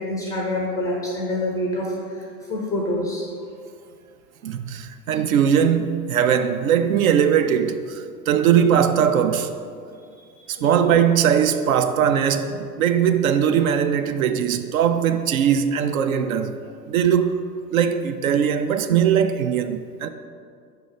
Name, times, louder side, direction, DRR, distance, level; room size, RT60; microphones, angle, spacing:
voice 1, 0.0-3.2 10.2-10.3, left 1 dB, 10° left, 0.4 m, -26 dB
voice 2, 4.4-9.5 10.5-16.6 16.9-17.4 17.7-20.1, right 8 dB, 60° right, 0.5 m, -20 dB
5.5 x 3.9 x 4.8 m
figure-of-eight pair, 90°, 48 cm